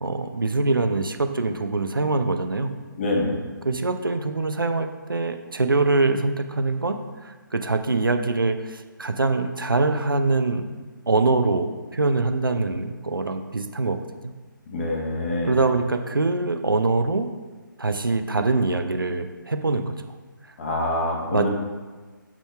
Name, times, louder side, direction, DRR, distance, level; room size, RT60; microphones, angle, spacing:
voice 1, 0.0-2.7 3.6-10.7 11.1-14.0 14.2-14.3 15.5-17.3 17.8-19.9 21.3-21.5, right 3 dB, 75° right, 7 dB, 0.7 m, -24 dB
voice 2, 3.0-3.5 14.7-15.6 20.6-21.5, left 1 dB, 35° left, -1 dB, 1.4 m, -26 dB
6.1 x 4.3 x 5.6 m, 1.3 s
figure-of-eight pair, 145°, 11 cm